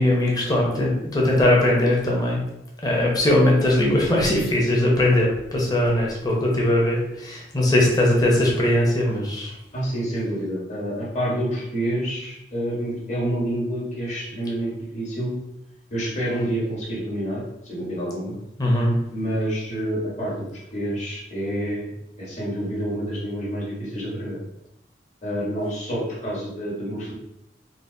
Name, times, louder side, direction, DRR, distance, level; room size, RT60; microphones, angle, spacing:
voice 1, 0.0-2.4 2.8-9.5 18.6-19.0, left 1 dB, 20° left, -3 dB, 0.9 m, -20 dB
voice 2, 9.7-15.3 15.9-18.3 19.1-20.5 20.7-24.4 25.2-27.1, right 1 dB, 40° left, -6 dB, 1.5 m, -28 dB
4.1 x 2.5 x 3.9 m, 0.82 s
head